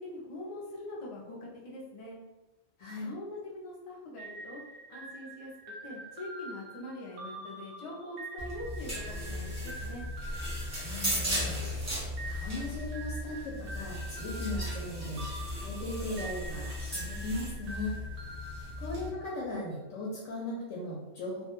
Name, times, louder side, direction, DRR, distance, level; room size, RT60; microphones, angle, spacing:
voice 1, 0.0-2.2 3.0-4.6 4.9-5.5 5.8-10.0, left 1 dB, 55° left, -3 dB, 0.3 m, -43 dB
voice 2, 2.8-3.1 10.8-11.6 12.2-18.0 18.8-21.5, left 2 dB, 85° left, -5 dB, 0.9 m, -38 dB
sound 1, 4.2-11.6 12.2-19.4, right 2 dB, 60° right, 0.6 m, -46 dB
sound 2, 8.4-19.1, left 1 dB, 20° right, 0.5 m, -36 dB
2.2 x 2.1 x 2.9 m, 1.0 s
omnidirectional pair, 1.2 m